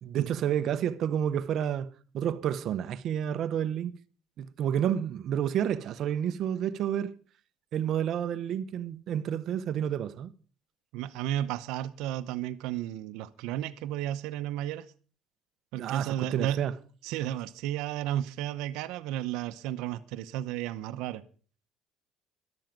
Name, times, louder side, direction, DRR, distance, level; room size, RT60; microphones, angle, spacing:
voice 1, 0.0-3.9 4.4-7.1 7.7-10.3 15.8-16.7, right 9 dB, 40° right, 0.8 m, -30 dB
voice 2, 10.9-14.9 15.7-16.6 17.0-21.2, right 12 dB, 75° right, 0.8 m, -33 dB
13.5 x 12.0 x 5.2 m
cardioid pair, 180°, 0 cm